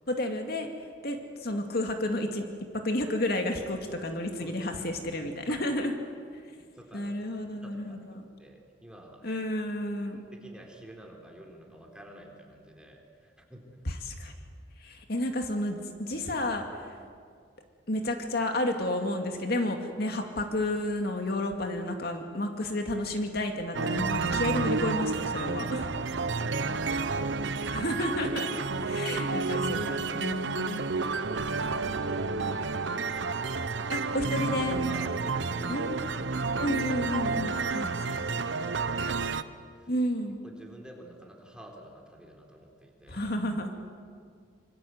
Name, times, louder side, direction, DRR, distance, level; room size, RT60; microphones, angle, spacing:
voice 1, 0.1-2.5 2.7-5.9 6.9-8.3 9.2-10.2 13.9-14.3 14.8-17.0 17.9-25.9 27.7-30.9 33.9-34.8 35.7-36.0 36.6-38.2 39.9-40.4 43.1-43.7, left 1 dB, 60° left, 4 dB, 2.4 m, -31 dB
voice 2, 4.4-4.7 5.5-5.7 6.4-7.1 7.6-8.0 8.4-9.4 10.1-13.8 26.1-27.8 31.2-31.6 31.9-32.1 32.4-33.3 34.9-36.9 37.2-39.9 40.4-43.3, right 1 dB, 5° right, 1 dB, 3.9 m, -50 dB
sound 1, 23.8-39.4, right 4 dB, 85° right, 0.9 m, -30 dB
26.0 x 24.5 x 8.0 m, 2.1 s
head